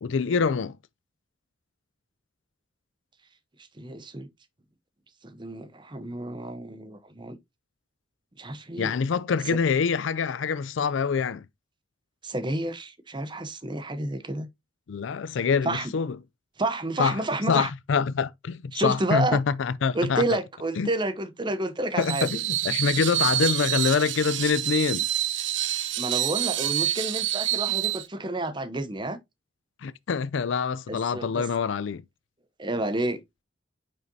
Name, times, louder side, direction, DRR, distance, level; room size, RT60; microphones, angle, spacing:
voice 1, 0.0-0.8 8.8-11.4 14.9-16.2 17.0-17.2 17.5-20.4 20.8-20.9 22.0-25.1 29.8-32.0, left 5 dB, 75° left, 0.4 m, -25 dB
voice 2, 3.8-4.3 5.2-7.4 8.4-8.9 12.2-14.5 15.6-15.9 16.6-17.7 18.7-19.4 19.9-22.3 26.0-29.2 30.9-31.4 32.6-33.2, right 2 dB, 25° right, 0.8 m, -30 dB
Screech, 22.0-28.1, right 13 dB, 70° right, 0.8 m, -27 dB
9.1 x 5.5 x 2.7 m
head